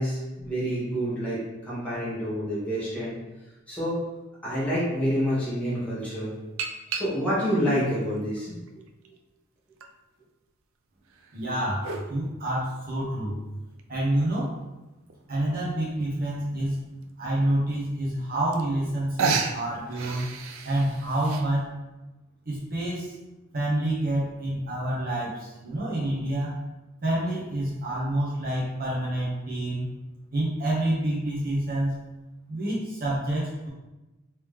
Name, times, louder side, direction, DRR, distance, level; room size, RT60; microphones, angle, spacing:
voice 1, 0.0-3.1 3.7-4.0 4.4-6.3 6.9-8.6, equal, 5° left, -9 dB, 1.4 m, -28 dB
sound 1, 4.9-5.0 6.6-7.5 8.2-9.2 9.8-9.9 11.1-12.1 13.8-13.9 14.4-14.5 14.7-14.8 15.1-15.4 16.4-16.5 17.0-17.1 18.2-18.3 18.5-18.9 19.2-21.5, right 5 dB, 70° right, 0.4 m, -31 dB
voice 2, 11.3-13.4 13.9-14.5 15.3-20.3 20.6-21.8 22.5-23.1 23.5-26.6 27.0-29.9 30.3-32.0 32.5-33.7, right 1 dB, 45° right, -6 dB, 0.8 m, -28 dB
3.1 x 2.9 x 3.4 m, 1.0 s
head